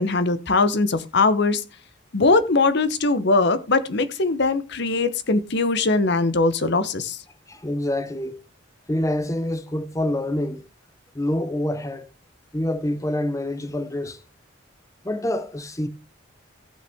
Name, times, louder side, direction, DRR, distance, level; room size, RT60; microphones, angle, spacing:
voice 1, 0.0-1.6 2.1-7.2, left 3 dB, 55° left, 0.8 m, -21 dB
voice 2, 7.5-8.4 8.9-10.6 11.1-12.1 12.5-14.2 15.0-15.9, left 1 dB, 15° left, 0.7 m, -26 dB
15.5 x 5.6 x 3.5 m
head